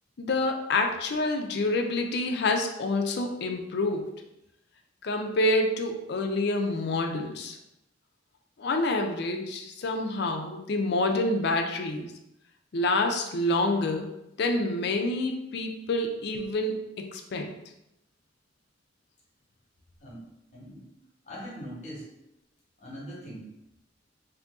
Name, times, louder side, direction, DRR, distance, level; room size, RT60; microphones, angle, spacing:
voice 1, 0.2-4.1 5.0-7.6 8.6-12.1 12.7-14.1 14.4-17.5, left 2 dB, 55° left, 4 dB, 0.4 m, -27 dB
voice 2, 20.5-20.9 21.2-22.1 22.8-23.4, equal, 35° left, -5 dB, 1.1 m, -41 dB
2.7 x 2.6 x 3.5 m, 0.86 s
head